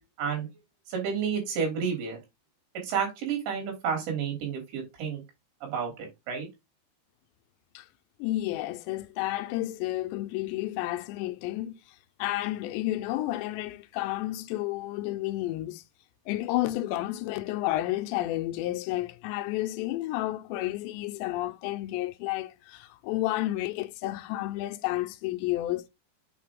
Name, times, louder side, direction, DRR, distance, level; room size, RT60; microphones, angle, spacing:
voice 1, 0.9-2.2 2.8-5.2 5.6-6.5, right 6 dB, 70° right, 5.2 m, -30 dB
voice 2, 8.2-15.8 16.3-25.9, left 16 dB, 85° left, 2.7 m, -31 dB
8.4 x 4.7 x 3.6 m
omnidirectional pair, 5.4 m